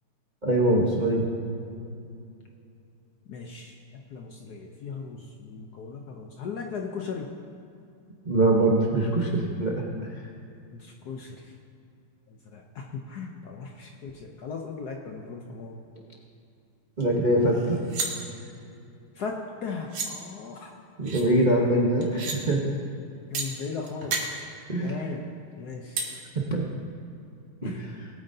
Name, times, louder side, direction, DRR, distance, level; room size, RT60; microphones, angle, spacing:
voice 1, 0.4-1.3 8.3-10.3 17.0-17.8 21.0-22.6 24.7-24.9 26.3-26.6 27.6-28.1, right 1 dB, 40° right, -2 dB, 0.6 m, -23 dB
voice 2, 3.3-7.3 10.7-11.5 12.3-15.8 19.1-20.8 23.3-24.3 24.8-25.3 25.6-26.0 27.6-28.0, left 5 dB, 65° left, 2 dB, 1.0 m, -37 dB
sound 1, 17.0-17.1 17.4-18.1 19.5-19.6 19.9-20.1 21.0-21.2 22.0-22.4 23.3-23.5 23.9-24.2 26.0-26.1, right 4 dB, 80° right, 2.3 m, -31 dB
20.0 x 9.0 x 2.7 m, 2.6 s
omnidirectional pair, 2.3 m